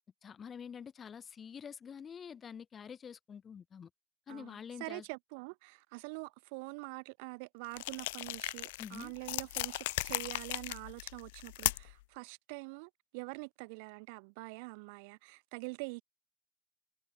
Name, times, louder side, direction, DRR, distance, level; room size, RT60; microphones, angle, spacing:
voice 1, 0.2-3.9 4.3-5.0 8.8-9.1, left 7 dB, 20° left, 0.6 m, -47 dB
voice 2, 4.3-16.0, right 32 dB, 55° right, 1.0 m, -45 dB
sound 1, 7.7-12.0, left 20 dB, 65° left, 0.4 m, -37 dB
supercardioid pair, 165°, 0 cm